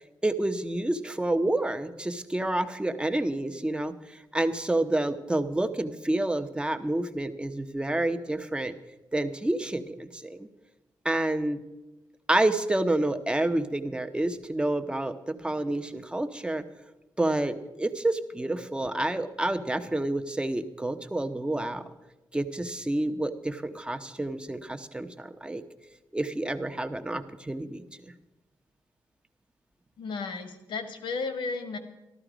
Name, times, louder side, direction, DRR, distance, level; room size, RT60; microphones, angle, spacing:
voice 1, 0.2-3.9 4.3-8.7 9.1-10.5 11.0-11.6 12.3-16.6 17.2-21.9 22.3-25.6 26.1-27.8, right 1 dB, 10° right, 8 dB, 0.9 m, -29 dB
voice 2, 30.0-31.8, left 4 dB, 85° left, 8 dB, 1.5 m, -33 dB
13.5 x 12.5 x 5.1 m, 1.0 s
cardioid pair, 95°, 8 cm